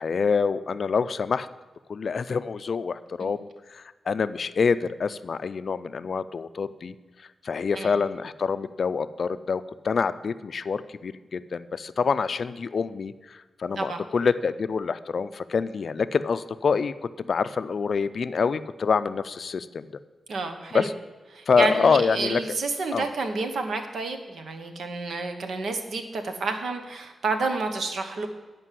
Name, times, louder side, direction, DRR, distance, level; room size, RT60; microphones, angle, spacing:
voice 1, 0.0-1.5 1.9-6.9 7.4-19.9 20.7-20.9 21.5-22.4 22.9-23.1, left 5 dB, 60° left, 14 dB, 0.4 m, -26 dB
voice 2, 20.3-20.9 21.3-28.3, right 3 dB, 80° right, 6 dB, 1.1 m, -30 dB
9.8 x 5.2 x 7.5 m, 1.2 s
cardioid pair, 85°, 0 cm